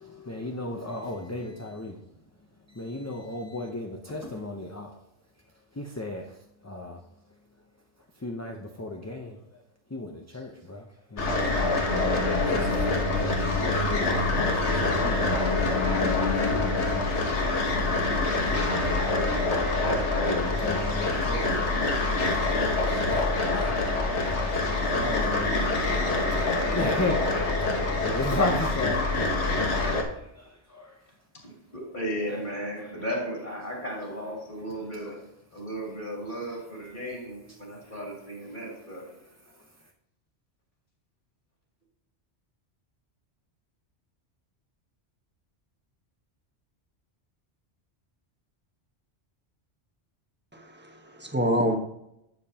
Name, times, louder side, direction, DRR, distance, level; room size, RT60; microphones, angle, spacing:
voice 1, 0.0-2.0 2.7-5.0 5.7-6.4 6.6-7.0 8.2-9.4 9.9-11.7 12.4-17.1 20.3-21.8 22.2-23.8 24.3-25.7 26.7-29.2 29.8-31.0 32.3-32.4 32.8-32.9 37.8-37.9 39.5-39.7, left 2 dB, 20° left, 2 dB, 0.6 m, -35 dB
sound 1, 11.2-30.0, left 2 dB, 80° left, 1.5 m, -25 dB
voice 2, 19.8-20.5 26.3-27.1 31.4-35.2 35.5-39.0, equal, 45° left, -3 dB, 3.1 m, -35 dB
voice 3, 50.5-51.8, equal, 10° right, 3 dB, 1.1 m, -27 dB
11.5 x 7.4 x 2.8 m, 0.81 s
omnidirectional pair, 1.1 m